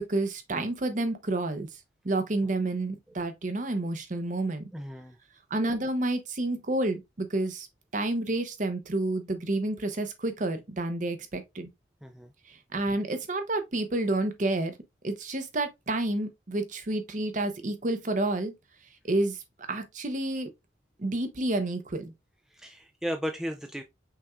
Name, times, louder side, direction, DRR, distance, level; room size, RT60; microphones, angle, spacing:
voice 1, 0.0-1.7 2.0-4.7 5.5-7.7 7.9-11.7 12.5-14.7 15.0-18.5 19.0-19.4 19.7-20.5 21.0-22.1, right 2 dB, 40° right, 0.7 m, -29 dB
voice 2, 4.7-5.2 12.0-12.3 22.5-23.8, equal, ahead, 0.3 m, -35 dB
5.7 x 3.5 x 2.4 m
head